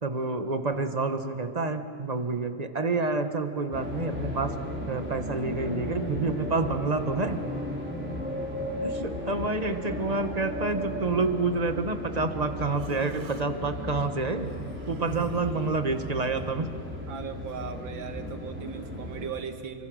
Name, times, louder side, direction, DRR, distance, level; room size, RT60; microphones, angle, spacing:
voice 1, 0.0-4.5 4.9-7.4 8.8-14.5 14.9-16.7, right 3 dB, 25° right, 8 dB, 1.1 m, -28 dB
sound 1, 3.7-19.3, left 1 dB, 5° right, 4.0 m, -35 dB
Human voice, 12.7-13.5 14.4-16.4, right 7 dB, 50° right, 1.6 m, -43 dB
voice 2, 17.1-19.9, right 6 dB, 80° right, 7 dB, 2.2 m, -38 dB
29.5 x 24.5 x 6.3 m, 2.5 s
omnidirectional pair, 2.1 m